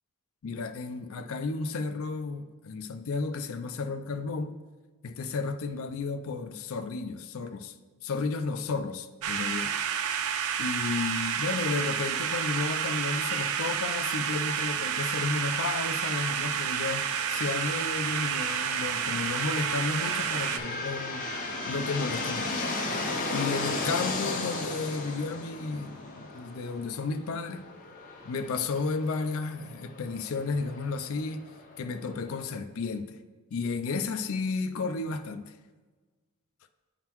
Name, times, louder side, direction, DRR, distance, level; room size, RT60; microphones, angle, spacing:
voice 1, 0.4-4.6 5.0-7.7 8.0-9.7 10.6-21.3 21.7-22.7 23.3-27.7 28.2-31.5 31.8-33.2 33.5-35.5, left 4 dB, 65° left, 0.4 m, -33 dB
sound 1, 9.2-20.6, right 8 dB, 75° right, 0.4 m, -30 dB
sound 2, 14.9-32.5, left 2 dB, 35° left, 0.7 m, -37 dB
9.4 x 3.7 x 3.0 m
head